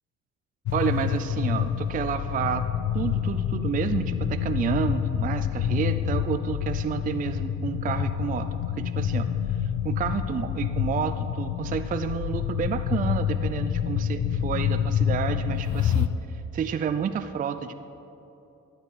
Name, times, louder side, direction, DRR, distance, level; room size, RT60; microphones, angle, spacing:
sound 1, 0.6-16.1, left 9 dB, 70° left, 0.5 m, -27 dB
voice 1, 0.7-17.7, right 7 dB, 30° right, 10 dB, 0.3 m, -30 dB
11.5 x 7.8 x 4.2 m, 2.9 s
cardioid pair, 90°, 30 cm